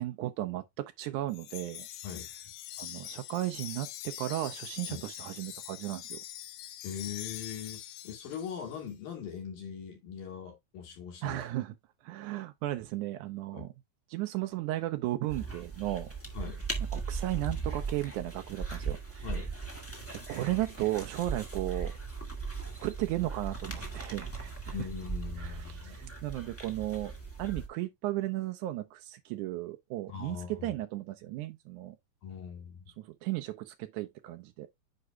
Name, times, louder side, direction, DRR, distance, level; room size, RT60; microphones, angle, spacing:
voice 1, 0.0-1.9 2.8-6.2 11.2-11.7 12.0-13.7 14.1-16.1 16.9-19.3 20.1-21.9 22.8-24.7 25.4-27.1 27.4-32.0 33.0-34.7, right 16 dB, 85° right, 1.8 m, -35 dB
Wind chime, 1.3-8.8, left 13 dB, 90° left, 2.7 m, -44 dB
voice 2, 6.8-11.4 13.5-13.7 16.3-16.6 19.2-19.5 24.7-26.0 30.1-30.7 32.2-32.9, left 8 dB, 70° left, 4.1 m, -41 dB
sound 1, 15.3-27.7, right 4 dB, 10° left, 0.6 m, -38 dB
9.6 x 5.0 x 2.3 m
omnidirectional pair, 4.2 m